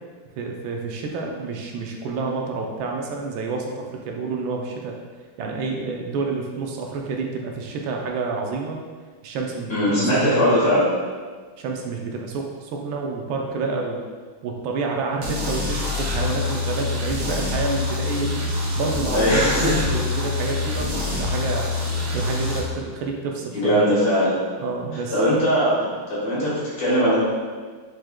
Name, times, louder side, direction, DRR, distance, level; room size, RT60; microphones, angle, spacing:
voice 1, 0.4-5.0 5.4-8.8 9.2-10.8 11.6-14.0 14.4-18.4 18.7-21.7 22.1-24.0 24.6-25.2, right 4 dB, 80° right, 1 dB, 1.4 m, -29 dB
voice 2, 9.7-10.8 19.1-19.8 23.5-24.3 25.1-25.8 26.1-27.2, equal, 60° left, -9 dB, 2.3 m, -20 dB
sound 1, 15.2-22.6, left 3 dB, 60° right, 1.4 m, -26 dB
4.8 x 4.5 x 2.2 m, 1.5 s
omnidirectional pair, 2.2 m